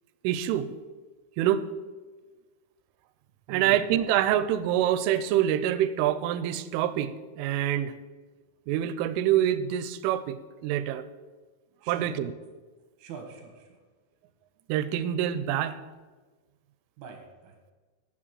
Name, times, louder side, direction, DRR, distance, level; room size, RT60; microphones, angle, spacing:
voice 1, 0.2-0.7 1.4-1.6 3.5-7.9 8.7-10.4 10.6-11.0 11.9-12.3 14.7-15.8, right 11 dB, 85° right, 14 dB, 3.1 m, -26 dB
voice 2, 3.5-3.8 11.8-12.1 13.0-13.8 17.0-17.5, right 6 dB, 65° right, 2 dB, 3.2 m, -43 dB
8.8 x 8.1 x 7.5 m, 1.3 s
omnidirectional pair, 5.7 m